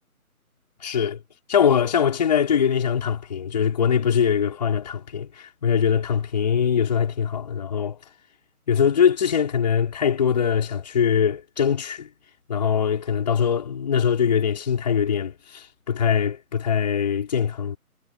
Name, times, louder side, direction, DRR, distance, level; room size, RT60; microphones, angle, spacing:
voice 1, 0.8-1.2 1.5-8.0 8.7-12.1 12.5-17.8, left 7 dB, 30° left, 4.6 m, -22 dB
figure-of-eight pair, 160°, 44 cm